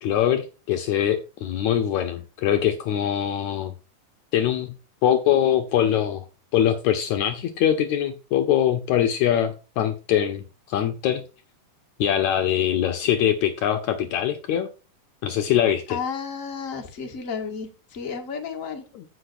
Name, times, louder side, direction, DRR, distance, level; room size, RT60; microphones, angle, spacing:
voice 1, 0.0-3.7 4.3-4.8 5.0-6.3 6.5-11.2 12.0-14.7 15.2-16.0 18.9-19.0, left 10 dB, 75° left, 1.9 m, -23 dB
voice 2, 15.9-18.8, left 6 dB, 30° left, 1.8 m, -32 dB
16.0 x 6.1 x 2.6 m
omnidirectional pair, 3.7 m